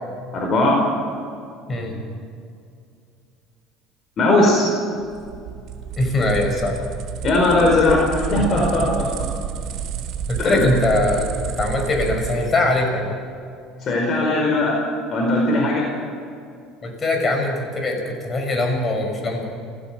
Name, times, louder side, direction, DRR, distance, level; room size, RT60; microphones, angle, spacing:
voice 1, 0.3-0.8 4.2-4.7 7.2-9.3 10.4-10.6 13.8-14.7 15.1-15.9, left 2 dB, 45° left, -1 dB, 4.8 m, -18 dB
sound 1, 5.0-12.6, right 8 dB, 60° right, 3.8 m, -30 dB
voice 2, 6.0-6.8 10.3-13.1 16.8-19.5, left 2 dB, 30° left, 3 dB, 6.4 m, -22 dB
29.5 x 16.0 x 6.2 m, 2.4 s
supercardioid pair, 105°, 0 cm